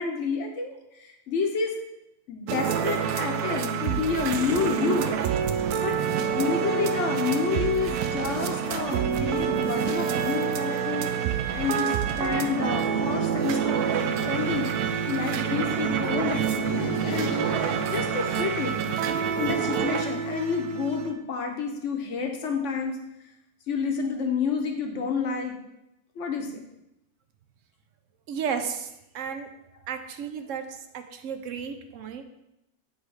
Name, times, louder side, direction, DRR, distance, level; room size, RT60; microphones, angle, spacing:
voice 1, 0.0-1.7 2.3-5.2 5.8-18.9 19.4-23.0 23.7-25.6 26.2-26.7, left 5 dB, 60° left, 3 dB, 1.1 m, -29 dB
sound 1, 2.5-21.1, right 7 dB, 90° right, 1.1 m, -27 dB
sound 2, 15.4-19.2, left 6 dB, 90° left, 1.2 m, -43 dB
voice 2, 28.3-28.9 29.1-29.5 29.9-30.7 30.9-32.2, right 7 dB, 65° right, 7 dB, 0.9 m, -33 dB
8.3 x 3.3 x 4.7 m, 0.86 s
omnidirectional pair, 1.5 m